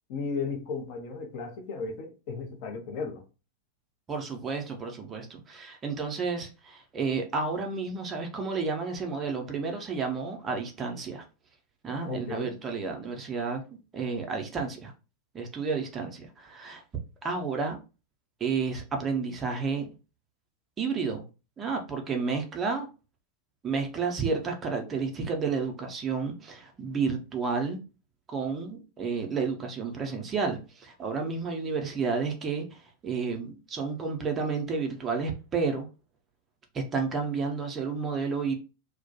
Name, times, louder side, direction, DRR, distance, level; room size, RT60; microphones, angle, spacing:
voice 1, 0.1-3.2 12.1-12.5, left 4 dB, 45° left, 0.6 m, -35 dB
voice 2, 4.1-11.2 11.8-13.6 13.9-14.9 15.3-16.8 17.2-17.8 18.4-19.9 20.8-21.2 21.6-22.9 23.6-27.8 28.3-35.9 36.7-38.5, right 5 dB, 25° right, 0.5 m, -31 dB
2.2 x 2.1 x 2.6 m
figure-of-eight pair, 90°, 0 cm